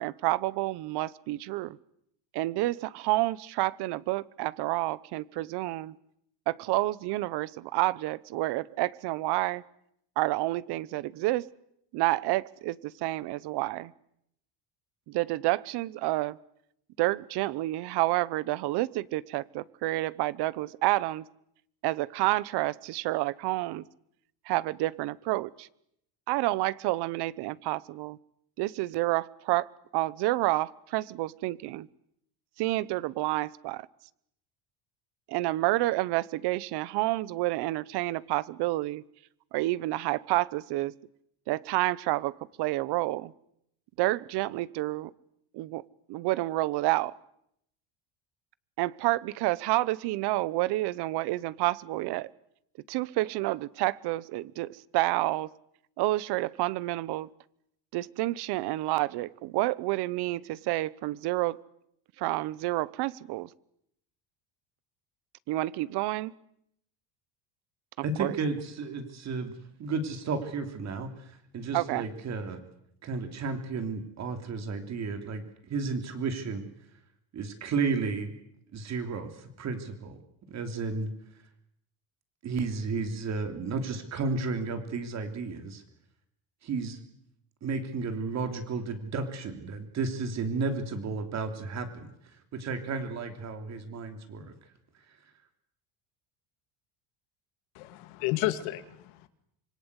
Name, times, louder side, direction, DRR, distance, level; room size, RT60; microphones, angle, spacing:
voice 1, 0.0-1.8 2.3-5.9 6.5-9.6 10.2-11.5 11.9-13.9 15.1-16.4 17.0-21.3 21.8-23.8 24.5-25.7 26.3-28.2 28.6-31.9 32.6-33.9 35.3-39.0 39.5-40.9 41.5-43.3 44.0-45.1 45.5-45.8 46.1-47.2 48.8-52.3 52.9-55.5 56.0-57.3 57.9-61.6 62.2-63.5 65.5-66.3 68.0-68.4 71.7-72.1, right 18 dB, 60° right, 20 dB, 1.0 m, -29 dB
voice 2, 68.0-72.6 73.0-76.6 77.3-78.3 78.7-80.2 80.5-81.1 82.4-85.8 86.6-87.0 87.6-92.1 92.5-94.5, right 4 dB, 35° right, 7 dB, 3.2 m, -33 dB
voice 3, 97.7-99.3, left 16 dB, 80° left, 10 dB, 2.5 m, -31 dB
26.5 x 24.5 x 8.2 m, 0.75 s
cardioid pair, 170°, 46 cm